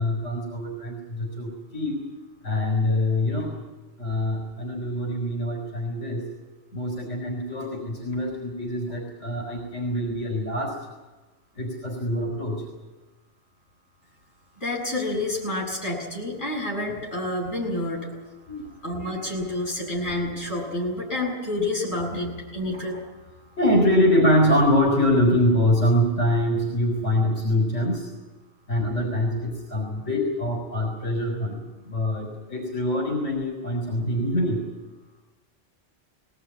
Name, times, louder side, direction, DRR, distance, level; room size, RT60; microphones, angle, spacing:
voice 1, 0.0-2.0 2.4-3.5 4.0-6.2 6.7-10.7 11.6-12.6 18.5-18.6 23.6-28.0 28.7-31.6 31.9-34.6, left 1 dB, 65° left, 1 dB, 4.1 m, -24 dB
voice 2, 14.6-18.1 18.8-23.0, left 1 dB, 40° left, -3 dB, 7.7 m, -29 dB
20.5 x 18.5 x 8.8 m, 1.2 s
omnidirectional pair, 1.3 m